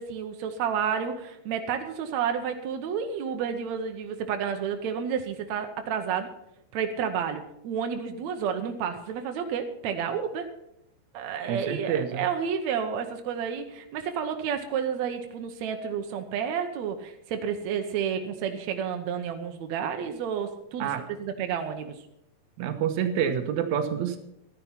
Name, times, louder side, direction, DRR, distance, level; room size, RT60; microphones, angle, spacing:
voice 1, 0.0-6.3 6.7-10.5 11.1-20.9 21.2-22.0, right 7 dB, 85° right, 6 dB, 1.6 m, -30 dB
voice 2, 11.5-12.2 20.8-21.0 22.6-24.2, right 8 dB, 70° right, 7 dB, 1.8 m, -27 dB
13.5 x 10.5 x 5.8 m, 0.78 s
omnidirectional pair, 4.6 m